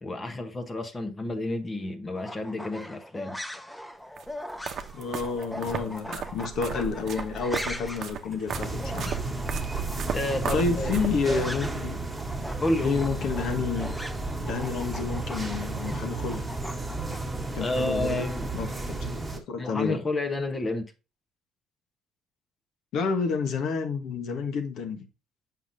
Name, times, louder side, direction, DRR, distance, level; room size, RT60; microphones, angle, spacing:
voice 1, 0.0-3.4 10.1-11.0 12.6-13.0 17.6-18.5 19.6-20.9, left 2 dB, 25° left, 1.0 m, -30 dB
sound 1, 2.2-11.9 12.2-17.2, left 1 dB, 5° left, 0.6 m, -40 dB
sound 2, 4.2-11.5, right 7 dB, 60° right, 0.8 m, -35 dB
voice 2, 4.9-9.1 10.5-12.0 12.8-13.9 14.4-16.4 17.5-18.3 18.5-20.0 22.9-25.1, left 5 dB, 70° left, 1.3 m, -30 dB
sound 3, 8.5-19.4, right 2 dB, 10° right, 1.6 m, -33 dB
7.1 x 5.8 x 2.7 m
cardioid pair, 110°, 0 cm